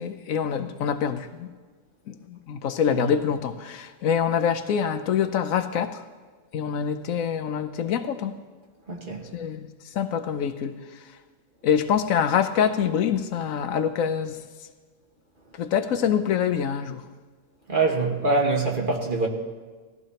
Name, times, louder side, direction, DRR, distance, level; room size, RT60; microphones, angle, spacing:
voice 1, 0.0-1.5 2.1-6.0 6.5-8.3 9.3-9.7 9.9-10.8 11.6-14.4 15.6-17.0, left 8 dB, 75° left, 1.1 m, -25 dB
voice 2, 8.9-9.2 17.7-19.3, right 3 dB, 40° right, 1.7 m, -24 dB
19.0 x 14.5 x 2.9 m
omnidirectional pair, 1.4 m